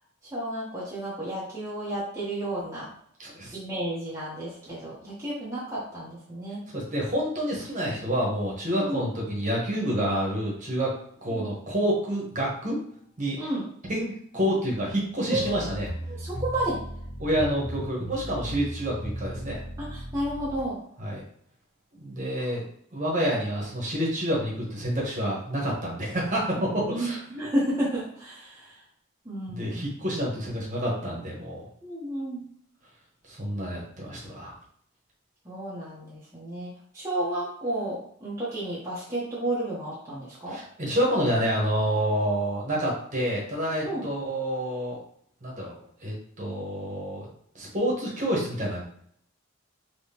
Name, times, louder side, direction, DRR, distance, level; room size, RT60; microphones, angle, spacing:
voice 1, 0.3-2.9 3.5-6.6 8.7-9.1 11.3-11.5 13.4-13.7 15.3-15.6 16.1-16.8 19.8-20.8 22.4-22.5 26.9-28.8 29.2-29.9 31.8-32.5 35.4-40.6 43.8-44.0, right 1 dB, 15° right, -9 dB, 0.9 m, -32 dB
voice 2, 3.2-3.6 6.7-10.9 11.2-12.8 13.2-13.4 13.9-15.9 17.2-19.6 21.0-21.2 22.0-22.6 22.9-27.2 29.5-31.6 33.3-34.5 40.5-45.0 45.4-47.3 47.5-48.8, equal, 40° right, -4 dB, 1.2 m, -28 dB
sound 1, 15.3-20.6, equal, 65° left, 1.4 m, -36 dB
3.6 x 3.0 x 2.9 m, 0.66 s
head